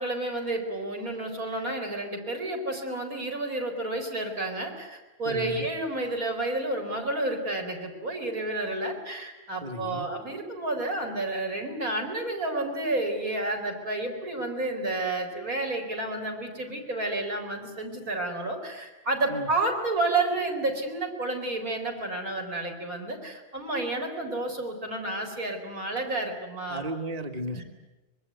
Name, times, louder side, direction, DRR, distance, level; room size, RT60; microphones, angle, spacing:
voice 1, 0.0-26.8 27.5-27.6, right 2 dB, 80° right, 2 dB, 4.7 m, -30 dB
voice 2, 5.2-5.7 9.6-10.1 19.3-19.5 26.7-27.6, right 1 dB, 30° right, 6 dB, 1.6 m, -34 dB
25.0 x 21.5 x 9.4 m, 1.1 s
omnidirectional pair, 1.5 m